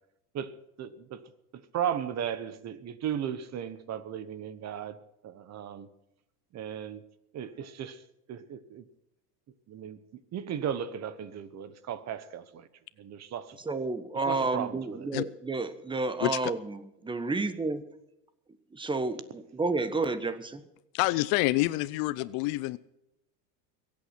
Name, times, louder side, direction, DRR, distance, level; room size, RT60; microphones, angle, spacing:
voice 1, 0.8-1.2 1.5-5.0 5.2-5.9 6.5-7.0 7.3-8.0 8.3-8.8 9.7-10.0 10.3-12.7 13.0-13.6 14.3-15.1, right 9 dB, 35° right, 1.1 m, -36 dB
voice 2, 13.7-17.8 18.7-20.6, right 3 dB, 10° right, 1.0 m, -31 dB
voice 3, 16.2-16.5 20.9-22.8, left 19 dB, 50° left, 0.5 m, -27 dB
22.0 x 8.7 x 5.9 m
supercardioid pair, 135°, 47 cm